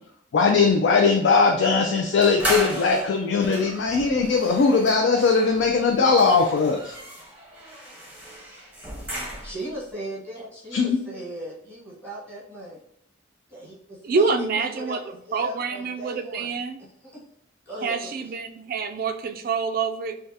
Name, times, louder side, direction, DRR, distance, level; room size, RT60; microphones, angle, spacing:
voice 1, 0.3-7.0 10.7-11.0, left 4 dB, 65° left, 0.3 m, -20 dB
sound 1, 2.2-9.7, equal, 10° right, 0.7 m, -34 dB
voice 2, 9.4-12.8 13.5-16.5 16.8-17.2 17.7-18.3, equal, 10° left, 1.1 m, -37 dB
voice 3, 14.0-15.0 15.3-16.8 17.8-20.2, right 4 dB, 50° right, 0.3 m, -26 dB
3.4 x 2.3 x 2.7 m
head